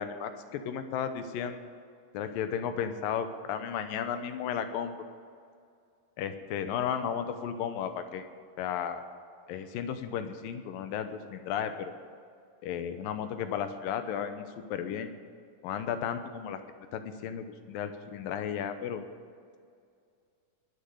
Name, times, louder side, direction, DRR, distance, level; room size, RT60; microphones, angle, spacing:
voice 1, 0.0-1.6 2.1-5.1 6.2-8.3 8.6-9.0 9.5-11.9 12.6-15.1 15.6-16.6 16.9-19.0, left 8 dB, 80° left, 9 dB, 2.6 m, -34 dB
20.0 x 6.8 x 7.8 m, 2.3 s
omnidirectional pair, 4.0 m